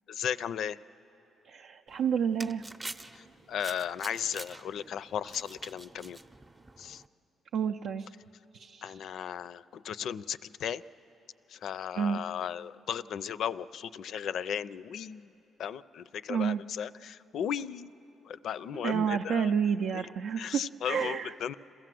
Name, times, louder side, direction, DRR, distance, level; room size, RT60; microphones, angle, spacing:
voice 1, 0.1-0.8 3.5-6.2 6.8-7.0 8.8-10.8 11.5-15.3 15.6-17.9 18.3-19.5 19.9-20.0 20.4-21.5, left 8 dB, 70° left, 16 dB, 0.4 m, -35 dB
voice 2, 1.4-2.6 7.5-8.1 8.5-9.1 11.9-12.2 16.3-16.6 18.7-21.3, right 7 dB, 80° right, 3 dB, 0.5 m, -30 dB
sound 1, 1.9-7.1, right 2 dB, 20° right, 0.6 m, -47 dB
27.0 x 15.0 x 7.6 m, 3.0 s
cardioid pair, 90°, 0 cm